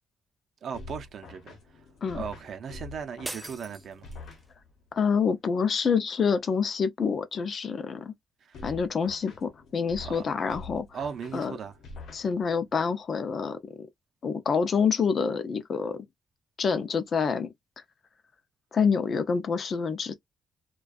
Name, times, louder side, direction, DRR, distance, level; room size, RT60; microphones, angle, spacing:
voice 1, 0.6-1.8 2.1-4.1 8.4-8.7 10.0-10.3 10.9-11.8, right 6 dB, 60° right, 0.6 m, -38 dB
sound 1, 0.7-4.9 8.5-12.8, left 3 dB, 80° left, 0.9 m, -46 dB
sound 2, 3.2-4.5, right 2 dB, 15° right, 0.4 m, -41 dB
voice 2, 4.9-8.1 8.6-10.9 11.3-11.5 12.1-13.9 14.2-16.1 16.6-17.5 18.7-20.2, left 6 dB, 45° left, 0.5 m, -27 dB
2.4 x 2.2 x 2.4 m
cardioid pair, 130°, 0 cm